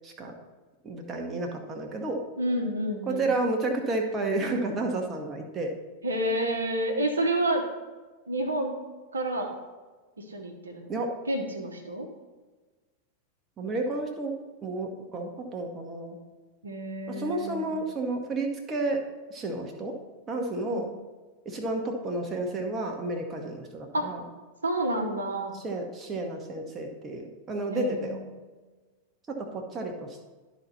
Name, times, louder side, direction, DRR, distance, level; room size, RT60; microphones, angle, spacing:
voice 1, 0.0-0.3 0.8-2.2 3.1-5.7 10.9-11.1 13.6-14.3 14.6-16.2 17.1-19.0 19.3-20.0 20.3-20.9 21.4-24.2 25.5-28.2 29.3-30.3, right 2 dB, 25° right, 2 dB, 1.1 m, -31 dB
voice 2, 2.4-3.3 6.0-7.7 8.3-8.8 9.1-9.5 10.3-11.0 11.3-12.1 16.6-17.7 20.7-20.8 23.9-24.2 24.6-25.5 27.7-28.3, right 1 dB, 75° right, 2 dB, 0.9 m, -29 dB
12.0 x 4.1 x 4.2 m, 1.3 s
figure-of-eight pair, 90°, 0 cm